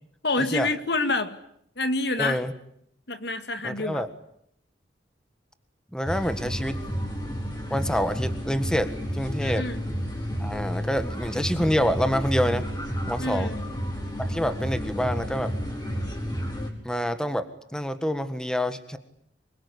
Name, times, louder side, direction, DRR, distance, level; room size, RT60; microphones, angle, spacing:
voice 1, 0.2-1.4 1.8-2.4 3.1-4.0 9.4-9.8 13.2-13.6, left 2 dB, 65° left, 9 dB, 2.2 m, -27 dB
voice 2, 2.2-2.5 3.6-4.1 5.9-6.8 7.7-9.7 10.4-12.7 13.1-13.5 14.2-15.5 16.8-19.0, equal, 5° left, 9 dB, 1.6 m, -27 dB
sound 1, 6.0-16.7, equal, 25° left, 5.6 m, -31 dB
26.0 x 23.0 x 9.9 m, 0.71 s
head